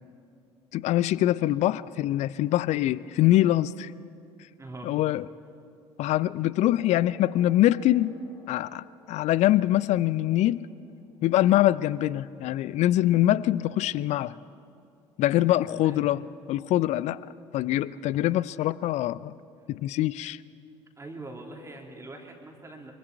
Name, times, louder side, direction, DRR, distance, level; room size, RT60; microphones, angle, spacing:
voice 1, 0.7-3.9 4.8-5.3 6.0-8.1 8.5-10.7 11.2-14.4 15.2-16.2 16.5-17.2 17.5-19.3 19.7-20.4, left 14 dB, 50° left, 20 dB, 0.5 m, -24 dB
voice 2, 4.6-5.0 15.5-16.1 21.0-22.9, right 2 dB, 20° right, 1 dB, 2.8 m, -43 dB
sound 1, 6.6-13.6, left 3 dB, 75° left, 3.1 m, -54 dB
24.5 x 24.0 x 4.6 m, 2.4 s
figure-of-eight pair, 60°, 15 cm